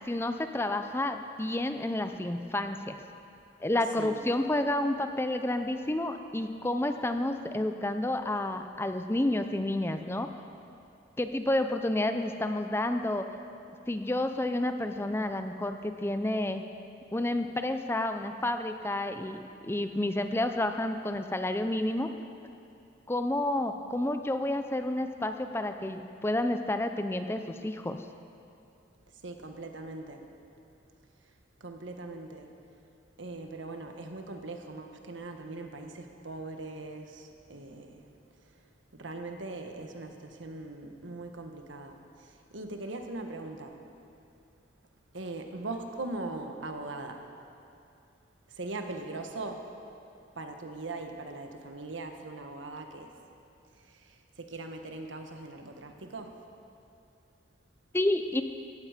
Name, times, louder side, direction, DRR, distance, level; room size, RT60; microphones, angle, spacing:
voice 1, 0.1-3.0 3.6-10.3 11.2-13.3 13.9-16.6 17.1-22.1 23.1-28.0 57.9-58.4, left 1 dB, 15° left, 7 dB, 0.5 m, -30 dB
voice 2, 29.1-30.3 31.2-31.3 31.6-32.5 33.2-38.1 38.5-38.6 38.9-43.8 45.1-47.2 48.5-49.7 50.3-53.1 53.8-56.4, right 2 dB, 80° right, 4 dB, 1.4 m, -40 dB
17.5 x 15.0 x 5.1 m, 2.6 s
head